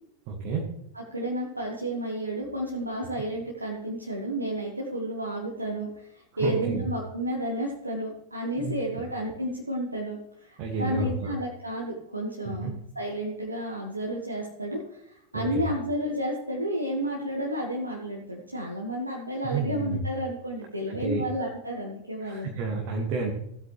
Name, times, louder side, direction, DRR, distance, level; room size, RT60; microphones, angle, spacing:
voice 1, 0.3-0.7 6.3-6.8 8.6-8.7 10.6-11.4 12.5-12.7 15.3-15.6 19.4-20.0 20.9-21.2 22.2-23.3, right 4 dB, 45° right, 0 dB, 1.7 m, -30 dB
voice 2, 0.9-22.5, equal, 85° right, -2 dB, 1.5 m, -31 dB
16.0 x 8.1 x 3.3 m, 0.77 s
figure-of-eight pair, 90°, 0 cm